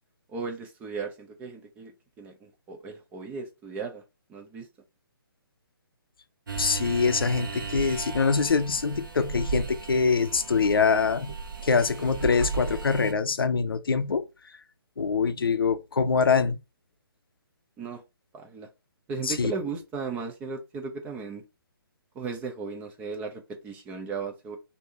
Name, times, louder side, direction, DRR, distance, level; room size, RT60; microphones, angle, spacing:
voice 1, 0.3-4.0 4.3-4.7 17.8-18.0 18.3-18.7 19.1-21.4 22.1-24.6, right 5 dB, 15° right, 0.5 m, -36 dB
sound 1, 6.5-13.1, right 4 dB, 60° right, 1.1 m, -35 dB
voice 2, 6.6-11.3 11.6-14.6 15.0-16.6 19.2-19.5, left 5 dB, 70° left, 0.5 m, -24 dB
3.3 x 2.7 x 4.0 m
figure-of-eight pair, 140°, 12 cm